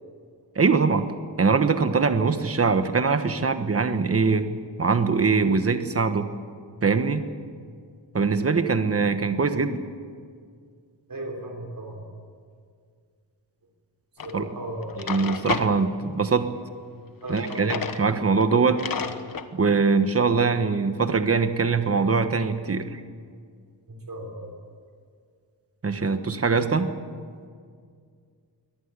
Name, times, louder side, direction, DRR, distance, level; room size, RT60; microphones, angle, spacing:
voice 1, 0.5-1.1 1.4-4.5 4.8-6.3 6.8-7.3 8.1-9.8 14.3-14.4 15.0-16.5 17.3-18.8 19.5-23.0 25.8-26.9, right 4 dB, 35° right, 9 dB, 1.3 m, -22 dB
voice 2, 11.1-12.1 14.2-15.1 17.2-17.8 19.5-19.6 23.9-24.5, right 1 dB, 50° right, 1 dB, 3.8 m, -36 dB
Drawer open or close, 14.2-14.3 14.8-15.7 17.3-18.0 18.4-18.5 18.8-19.5, left 6 dB, 50° left, 1.2 m, -32 dB
23.5 x 18.5 x 8.4 m, 2.1 s
wide cardioid pair, 150°, 43 cm